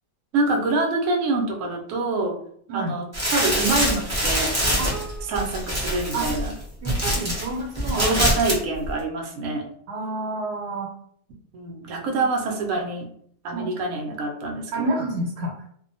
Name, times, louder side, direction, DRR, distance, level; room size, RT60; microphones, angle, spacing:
voice 1, 0.3-2.4 2.7-4.5 5.2-6.5 8.0-9.6 11.5-13.1 13.4-14.9, right 3 dB, 65° right, 1 dB, 0.9 m, -26 dB
sound 1, 3.1-7.4 7.7-8.6 8.8-8.9, equal, 25° right, 0.3 m, -24 dB
voice 2, 4.8-5.3 6.1-6.3 6.8-8.1 9.9-10.9 13.5-13.6 14.7-15.5, right 2 dB, 85° right, -3 dB, 1.2 m, -29 dB
2.6 x 2.1 x 2.6 m, 0.63 s
omnidirectional pair, 1.7 m